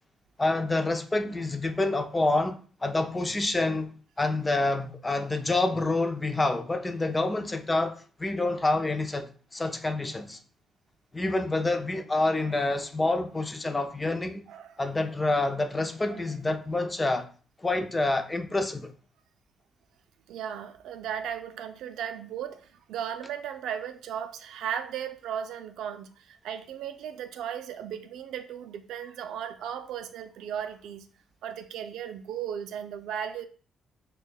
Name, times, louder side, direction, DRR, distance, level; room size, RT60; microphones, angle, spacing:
voice 1, 0.4-3.9 4.2-10.4 11.1-14.4 14.8-17.3 17.6-18.9, left 2 dB, 20° left, 0.5 m, -27 dB
voice 2, 14.5-14.8 16.1-16.2 20.3-31.1 31.4-33.4, right 9 dB, 80° right, 0.4 m, -36 dB
6.1 x 2.2 x 2.2 m
cardioid pair, 90°, 0 cm